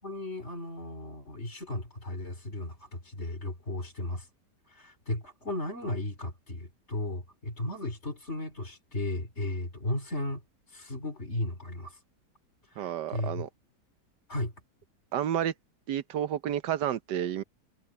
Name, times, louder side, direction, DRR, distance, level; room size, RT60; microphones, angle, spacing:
voice 1, 0.0-4.3 4.7-10.4 10.7-12.0 12.7-13.5 14.3-14.5, left 1 dB, 40° left, 3.8 m, -35 dB
voice 2, 12.8-13.5 15.1-15.5 15.9-17.4, right 10 dB, 90° right, 1.5 m, -30 dB
omnidirectional pair, 1.8 m